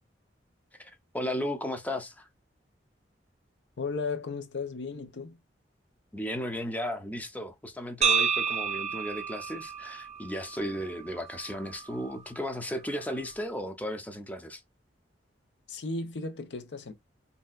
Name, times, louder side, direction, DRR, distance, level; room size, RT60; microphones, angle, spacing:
voice 1, 0.8-2.3 6.1-14.6, equal, 10° left, 0.5 m, -35 dB
voice 2, 3.8-5.4 15.7-16.9, left 4 dB, 70° left, 0.6 m, -35 dB
sound 1, 8.0-12.1, right 6 dB, 40° right, 0.6 m, -31 dB
3.2 x 2.7 x 2.3 m
head